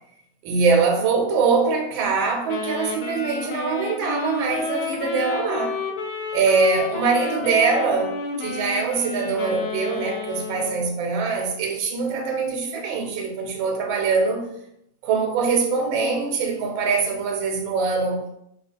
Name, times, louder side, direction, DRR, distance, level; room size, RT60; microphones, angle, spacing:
voice 1, 0.4-5.8 6.3-14.5 15.0-18.3, right 4 dB, 90° right, 2 dB, 1.4 m, -23 dB
Wind instrument woodwind instrument, 2.5-11.0, left 4 dB, 75° left, 0.8 m, -31 dB
3.2 x 2.3 x 3.3 m, 0.77 s
omnidirectional pair, 2.1 m